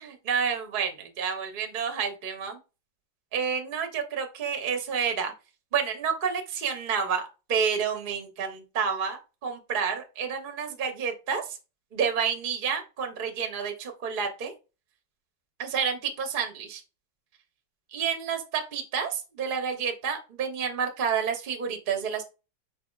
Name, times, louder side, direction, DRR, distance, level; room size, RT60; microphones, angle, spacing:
voice 1, 0.0-2.6 3.3-5.3 5.7-11.6 11.9-14.5 15.6-16.8 17.9-22.3, right 6 dB, 55° right, 4 dB, 0.5 m, -29 dB
4.4 x 4.1 x 2.3 m, 0.30 s
omnidirectional pair, 2.1 m